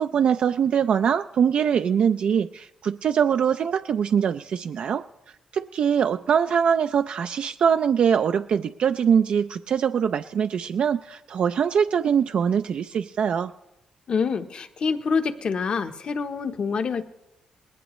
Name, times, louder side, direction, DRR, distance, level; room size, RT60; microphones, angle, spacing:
voice 1, 0.0-5.0 5.5-13.5, right 7 dB, 60° right, 8 dB, 0.4 m, -23 dB
voice 2, 14.1-17.1, left 5 dB, 50° left, 8 dB, 0.9 m, -26 dB
20.0 x 17.0 x 3.1 m, 0.96 s
cardioid pair, 115°, 2 cm